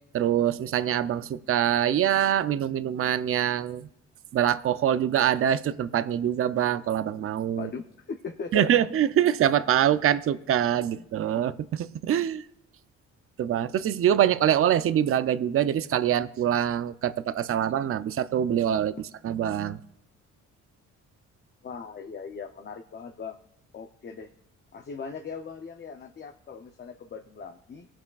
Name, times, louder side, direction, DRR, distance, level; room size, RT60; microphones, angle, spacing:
voice 1, 0.1-3.9 4.3-7.7 8.5-12.4 13.4-18.9 19.2-19.8, right 10 dB, 50° right, 13 dB, 0.5 m, -24 dB
voice 2, 7.6-8.7 10.9-11.1 11.3-11.4 21.6-23.4 23.7-24.3 24.7-27.9, left 5 dB, 35° left, 6 dB, 0.6 m, -39 dB
21.5 x 7.4 x 2.4 m, 0.75 s
cardioid pair, 90°, 30 cm